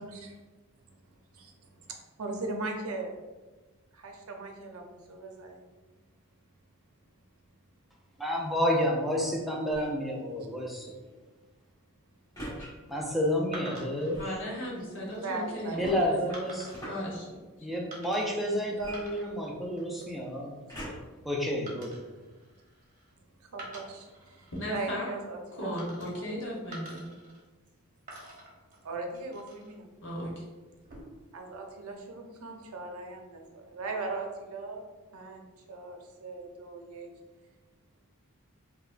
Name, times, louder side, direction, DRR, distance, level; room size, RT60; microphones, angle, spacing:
voice 1, 0.0-0.4 0.8-3.2 3.9-5.7 15.2-15.8 21.1-21.3 22.2-22.3 23.4-26.2 28.8-29.9 31.3-34.9 35.1-37.1, right 3 dB, 80° right, 2 dB, 0.6 m, -39 dB
voice 2, 8.2-10.9 12.9-14.2 15.8-16.7 17.6-20.5 21.2-21.9, equal, ahead, -3 dB, 0.4 m, -30 dB
sound 1, 9.6-10.0 12.3-12.7 14.1-14.4 15.8-17.1 18.8-19.7 20.7-21.2 21.9-22.0, right 1 dB, 20° left, 1.2 m, -43 dB
sound 2, 13.5-14.2 14.9-15.2 16.3-16.9 17.9-18.5 18.8-19.5 19.8-20.2 21.7-23.1 23.5-24.7 25.8-26.4 26.7-27.7 28.1-29.8 30.7-31.3, right 1 dB, 40° right, 0.9 m, -47 dB
voice 3, 14.2-16.5 16.8-17.4 24.5-25.1 25.6-27.1 30.0-30.4, equal, 60° left, -4 dB, 1.1 m, -36 dB
4.7 x 2.2 x 2.4 m, 1.2 s
head